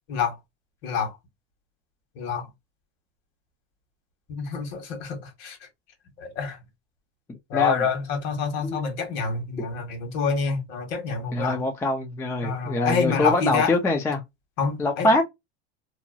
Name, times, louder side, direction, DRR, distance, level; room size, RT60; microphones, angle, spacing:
voice 1, 0.8-1.2 2.1-2.5 4.3-5.6 6.2-6.6 7.5-11.6 12.4-13.7 14.6-15.1, left 5 dB, 55° left, 1.6 m, -27 dB
voice 2, 11.3-14.2 14.8-15.2, left 2 dB, 10° left, 0.3 m, -24 dB
2.9 x 2.2 x 2.5 m
supercardioid pair, 130°, 33 cm